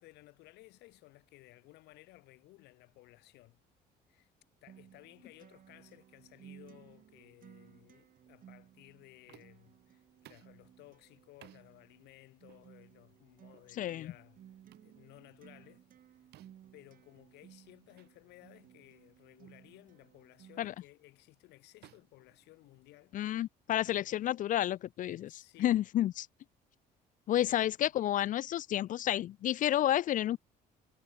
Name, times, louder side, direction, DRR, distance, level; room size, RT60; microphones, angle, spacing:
voice 1, 0.0-3.6 4.1-4.3 4.6-14.4 14.8-15.8 16.7-23.2 23.9-24.1 25.3-25.8 27.3-27.9, left 19 dB, 85° left, 4.0 m, -58 dB
Acoustic guitar, 4.7-20.7, right 10 dB, 55° right, 3.2 m, -59 dB
sound 1, 9.3-9.7 10.2-10.6 11.4-11.7 12.5-12.7 13.5-13.7 14.7-14.9 16.3-16.7 18.0-18.1 18.5-18.7 19.5-19.7 20.6-20.9 21.8-23.0, right 16 dB, 80° right, 5.8 m, -60 dB
voice 2, 13.8-14.1 20.6-20.7 23.1-26.3 27.3-30.4, left 12 dB, 50° left, 0.4 m, -31 dB
cardioid pair, 110°, 17 cm